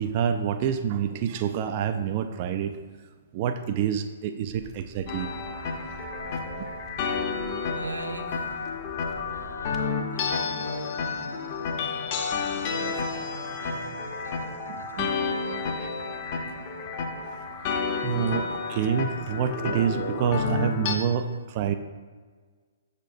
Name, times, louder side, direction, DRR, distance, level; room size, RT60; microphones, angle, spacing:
voice 1, 0.0-2.7 3.3-5.3 14.7-15.1 18.0-21.7, right 8 dB, 35° right, 8 dB, 0.4 m, -27 dB
sound 1, 4.5-9.8, right 1 dB, 20° right, 0.7 m, -48 dB
sound 2, 5.1-21.0, left 5 dB, 40° left, 0.8 m, -31 dB
voice 2, 7.7-8.7 9.1-12.3 12.7-15.7, right 2 dB, 85° right, 4 dB, 0.8 m, -42 dB
8.1 x 6.6 x 2.6 m, 1.5 s
figure-of-eight pair, 120°, 0 cm